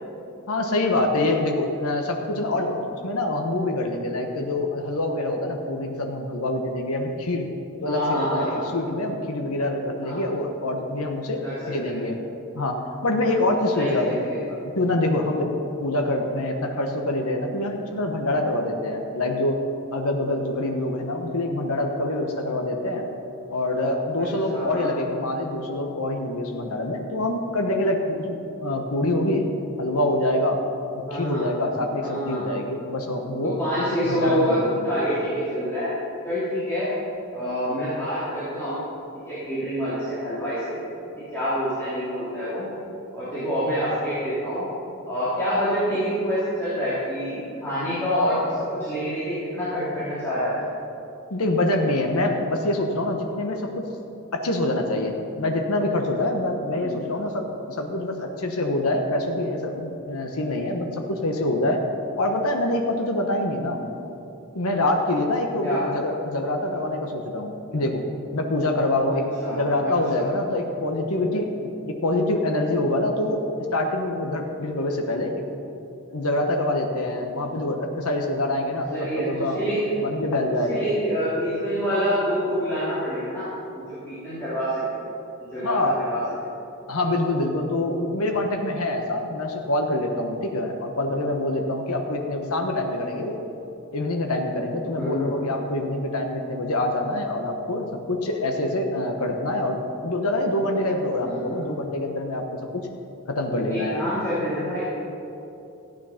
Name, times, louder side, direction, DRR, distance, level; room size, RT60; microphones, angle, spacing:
voice 1, 0.5-7.5 7.8-11.4 11.7-12.2 12.5-14.2 14.5-15.5 15.8-19.6 19.9-23.0 23.5-28.3 28.6-29.5 29.8-30.6 31.1-33.6 34.0-34.9 51.3-53.7 54.3-61.8 62.2-63.8 64.5-68.0 68.3-75.3 76.1-79.6 80.0-80.8 85.6-86.0 86.9-93.4 93.9-102.4 102.7-102.9 103.3-104.0, left 1 dB, 80° left, 2 dB, 1.1 m, -25 dB
voice 2, 7.8-8.6 10.0-10.2 11.4-12.0 13.7-14.4 24.2-24.9 31.0-31.5 32.0-32.4 33.4-35.9 36.2-36.9 37.3-38.8 39.3-40.8 41.3-42.7 43.1-44.7 45.0-50.5 56.8-57.0 63.7-63.9 65.6-65.8 69.4-70.3 78.9-79.8 80.7-83.5 83.9-85.0 85.5-86.2 94.8-95.5 101.2-101.8 103.6-104.8, equal, 10° left, -13 dB, 3.0 m, -27 dB
14.0 x 9.0 x 5.8 m, 2.8 s
head